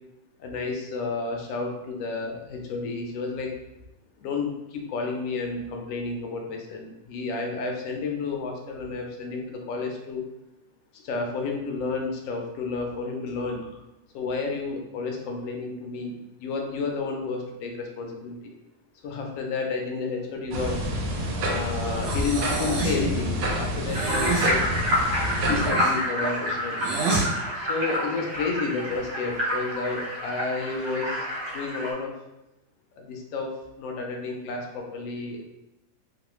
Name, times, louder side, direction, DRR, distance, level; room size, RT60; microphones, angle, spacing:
voice 1, 0.4-3.5 4.2-10.2 10.9-13.8 14.1-18.4 19.0-20.8 21.4-24.6 25.5-26.8 27.5-32.1 33.0-33.5 33.8-35.5, left 4 dB, 75° left, 1 dB, 0.7 m, -31 dB
sound 1, 20.5-25.7, equal, 85° right, 1.3 m, -28 dB
Breathing, 22.0-23.1 23.9-24.5 25.3-27.3, right 3 dB, 70° right, 1.3 m, -29 dB
sound 2, 23.9-31.9, equal, 50° right, 0.8 m, -28 dB
3.0 x 2.1 x 3.0 m, 0.94 s
omnidirectional pair, 1.9 m